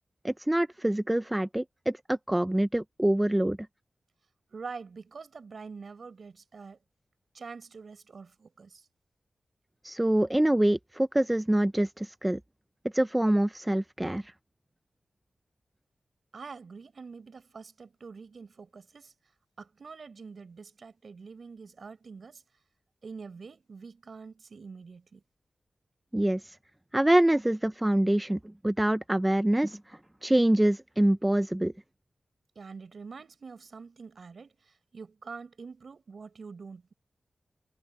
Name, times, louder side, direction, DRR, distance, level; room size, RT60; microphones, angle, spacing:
voice 1, 0.2-3.6 9.8-12.4 12.9-14.3 26.1-26.5 26.9-31.7, right 1 dB, 10° right, 0.4 m, -25 dB
voice 2, 4.5-6.8 7.3-8.9 16.3-19.1 19.6-22.4 23.0-25.2 32.5-36.9, right 5 dB, 60° right, 4.8 m, -45 dB
wide cardioid pair, 150°, 0 cm